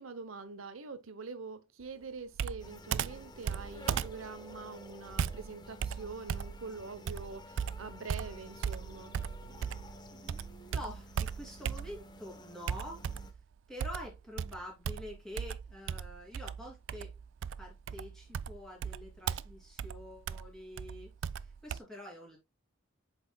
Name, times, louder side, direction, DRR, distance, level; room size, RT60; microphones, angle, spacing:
voice 1, 0.0-9.2, right 4 dB, 80° right, 0.8 m, -45 dB
Computer keyboard, 2.4-10.0 10.3-12.2 12.7-13.4 13.8-21.8, right 7 dB, 65° right, 0.3 m, -37 dB
sound 1, 2.6-13.3, left 2 dB, 20° left, 0.7 m, -52 dB
voice 2, 10.1-13.3 13.7-17.1 17.6-21.1 21.4-22.4, left 1 dB, 5° left, 2.8 m, -47 dB
7.9 x 5.4 x 2.2 m
head